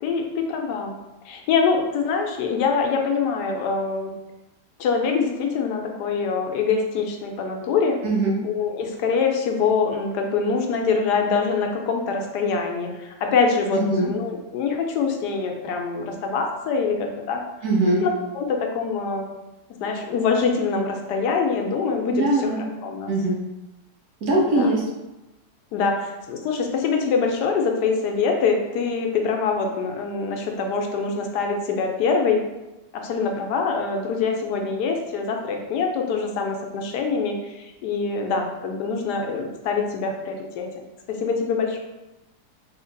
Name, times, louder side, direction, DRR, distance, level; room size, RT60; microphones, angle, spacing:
voice 1, 0.0-0.9 1.2-4.1 4.8-8.0 8.4-17.4 18.0-19.3 19.8-22.2 22.8-23.1 24.5-24.7 25.7-32.4 32.9-40.8 41.1-41.8, left 5 dB, 85° left, 3 dB, 1.2 m, -24 dB
voice 2, 8.0-8.4 13.7-14.1 17.6-18.0 22.1-22.6 23.1-23.4 24.2-24.8, right 2 dB, 70° right, -2 dB, 1.3 m, -21 dB
3.1 x 2.8 x 3.8 m, 1.0 s
omnidirectional pair, 1.7 m